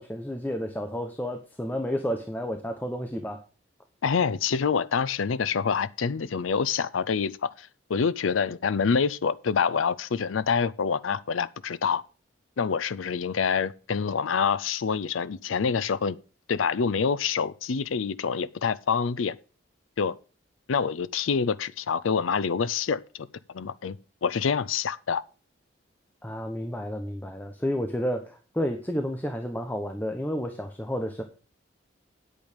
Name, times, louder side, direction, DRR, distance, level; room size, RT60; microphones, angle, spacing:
voice 1, 0.0-3.4 26.2-31.2, equal, 10° left, 0.9 m, -31 dB
voice 2, 4.0-12.0 12.6-16.2 16.5-19.4 20.0-20.1 20.7-23.3 23.5-24.0 24.2-25.2, left 6 dB, 85° left, 0.5 m, -26 dB
8.9 x 8.4 x 5.1 m
head